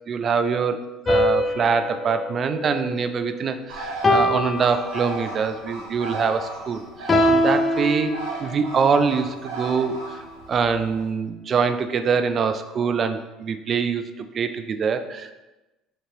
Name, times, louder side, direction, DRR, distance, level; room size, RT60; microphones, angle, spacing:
voice 1, 0.1-0.8 1.1-8.1 8.4-15.3, right 5 dB, 45° right, 10 dB, 0.4 m, -24 dB
sound 1, 1.1-3.5 4.0-5.5 7.1-8.8, left 1 dB, 30° left, 0.5 m, -23 dB
Bird, 3.7-11.1, right 2 dB, 85° right, 0.8 m, -36 dB
5.3 x 3.0 x 2.5 m, 1.0 s
hypercardioid pair, 70°, 0 cm